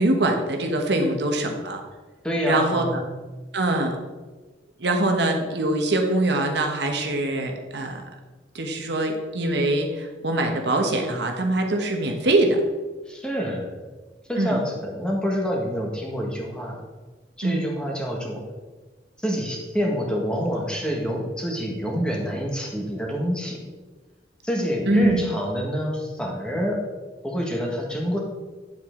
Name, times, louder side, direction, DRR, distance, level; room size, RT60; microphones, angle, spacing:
voice 1, 0.0-1.8 2.5-3.0 3.5-4.0 4.8-8.0 8.5-12.6 14.4-14.6 17.4-17.6 24.9-25.3, right 1 dB, 65° right, 3 dB, 1.2 m, -23 dB
voice 2, 2.2-3.1 13.1-13.7 14.3-16.8 17.4-18.4 19.2-23.6 24.4-26.8 27.2-28.2, equal, 5° left, -1 dB, 1.6 m, -27 dB
9.4 x 7.6 x 3.8 m, 1.3 s
head